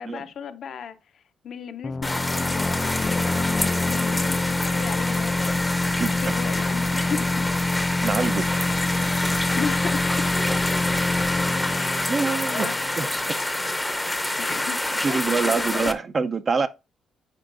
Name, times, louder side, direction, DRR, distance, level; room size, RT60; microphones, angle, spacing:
voice 1, 0.0-5.6 6.1-7.5 9.3-10.4 11.6-12.1 12.4-12.9 14.4-15.9, left 7 dB, 60° left, 0.6 m, -35 dB
sound 1, 1.8-13.3, left 2 dB, 25° left, 0.3 m, -27 dB
sound 2, 2.0-15.9, left 1 dB, 10° left, 0.7 m, -27 dB
voice 2, 8.0-8.5 12.1-12.7 13.0-13.2 15.0-16.7, right 4 dB, 40° right, 0.6 m, -25 dB
8.9 x 4.4 x 2.6 m
cardioid pair, 90°, 0 cm